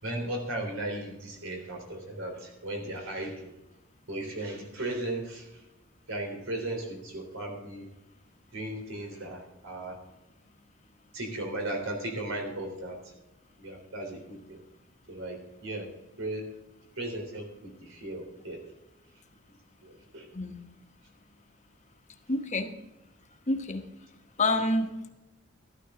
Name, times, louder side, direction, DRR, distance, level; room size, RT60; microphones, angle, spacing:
voice 1, 0.0-3.5 4.1-5.5 6.1-7.9 8.5-10.0 11.1-13.0 13.6-14.6 15.1-15.9 16.2-16.5 17.0-18.6 19.8-20.2, right 1 dB, 80° right, 2 dB, 3.7 m, -36 dB
voice 2, 22.3-22.7 23.5-23.8 24.4-25.1, left 2 dB, 35° left, 5 dB, 1.2 m, -28 dB
13.0 x 13.0 x 3.8 m, 0.95 s
head